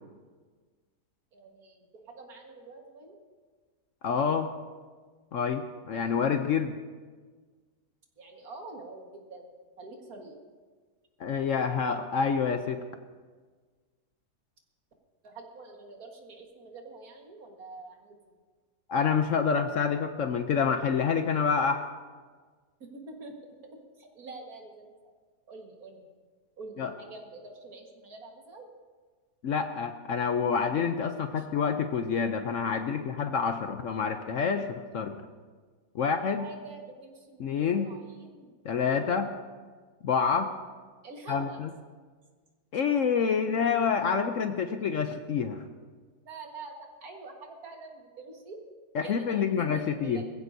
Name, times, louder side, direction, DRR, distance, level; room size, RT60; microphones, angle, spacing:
voice 1, 1.3-3.2 8.2-9.5 9.8-10.4 15.2-18.2 22.8-23.4 23.6-24.9 25.5-26.1 26.6-28.7 31.4-31.5 36.4-38.5 41.0-41.6 46.2-48.6 49.0-50.2, right 3 dB, 65° right, 2 dB, 2.1 m, -46 dB
voice 2, 4.0-4.5 5.3-6.8 11.2-12.8 18.9-21.8 26.8-26.9 29.4-35.2 35.9-36.5 37.4-37.9 38.6-39.3 40.0-40.5 41.3-41.7 42.7-45.6 48.9-50.2, left 6 dB, 60° left, 7 dB, 0.9 m, -27 dB
20.5 x 15.0 x 2.7 m, 1.5 s
omnidirectional pair, 1.7 m